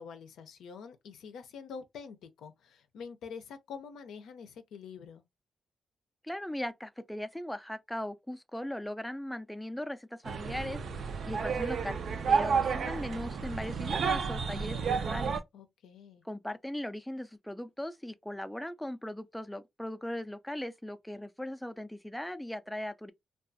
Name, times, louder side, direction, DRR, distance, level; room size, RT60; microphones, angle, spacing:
voice 1, 0.0-5.2 15.5-16.2, left 6 dB, 85° left, 0.5 m, -46 dB
voice 2, 6.2-10.8 11.3-12.0 12.3-15.3 16.2-23.1, left 1 dB, 5° left, 0.3 m, -38 dB
sound 1, 10.3-15.4, right 5 dB, 65° right, 0.4 m, -31 dB
2.3 x 2.3 x 2.6 m
cardioid pair, 70°, 0 cm